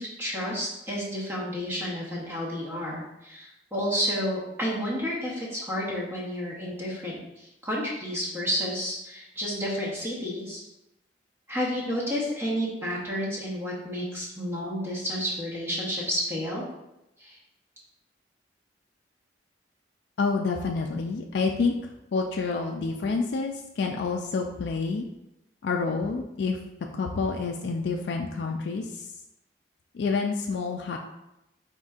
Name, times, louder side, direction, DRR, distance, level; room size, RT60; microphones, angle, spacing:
voice 1, 0.0-10.6 11.5-16.6 17.2-17.4, equal, 15° right, -5 dB, 1.0 m, -31 dB
voice 2, 20.2-21.7 22.1-25.1 25.6-26.6 26.9-28.8 29.9-31.0, left 4 dB, 65° left, 1 dB, 0.3 m, -28 dB
4.3 x 4.0 x 2.4 m, 0.88 s
head